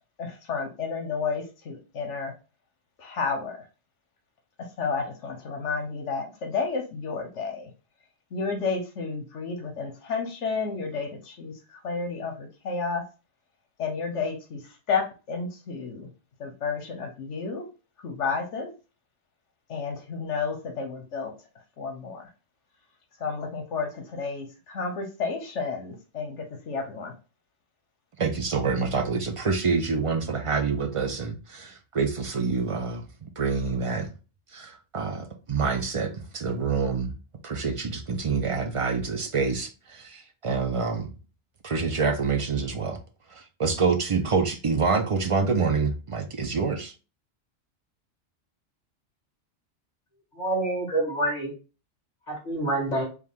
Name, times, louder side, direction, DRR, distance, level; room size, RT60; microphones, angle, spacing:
voice 1, 0.2-2.3 3.0-3.7 4.8-7.7 8.3-13.0 13.8-16.1 16.4-17.7 18.0-18.7 19.7-21.3 21.8-22.3 23.2-27.1, left 4 dB, 80° left, 1.2 m, -31 dB
voice 2, 28.2-34.1 34.5-37.1 37.4-41.1 41.6-43.0 43.3-46.9, right 4 dB, 50° right, 0.4 m, -27 dB
voice 3, 50.3-51.5 52.3-53.0, right 1 dB, 40° left, 2.4 m, -27 dB
4.8 x 2.2 x 3.5 m
omnidirectional pair, 1.2 m